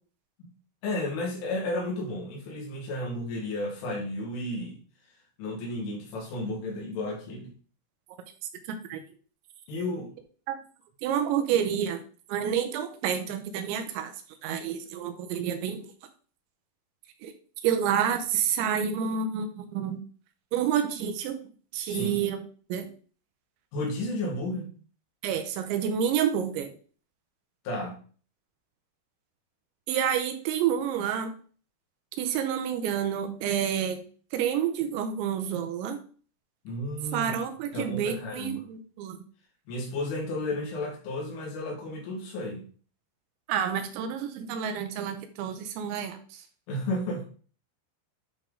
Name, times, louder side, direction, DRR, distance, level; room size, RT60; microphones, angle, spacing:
voice 1, 0.8-4.8 5.4-7.5 9.7-10.1 21.9-22.2 23.7-24.7 27.7-28.0 36.7-37.3 37.7-38.6 39.7-42.6 46.7-47.2, left 1 dB, 75° left, -2 dB, 4.0 m, -33 dB
voice 2, 8.7-9.0 10.5-10.6 11.0-12.0 12.3-14.1 14.4-15.9 17.2-17.3 17.6-20.0 20.5-21.4 21.7-22.4 22.7-22.9 25.2-26.7 29.9-31.3 32.2-34.1 34.3-36.0 37.1-39.2 43.5-46.2, right 8 dB, 80° right, 6 dB, 2.9 m, -29 dB
10.5 x 3.5 x 3.7 m, 0.41 s
omnidirectional pair, 5.7 m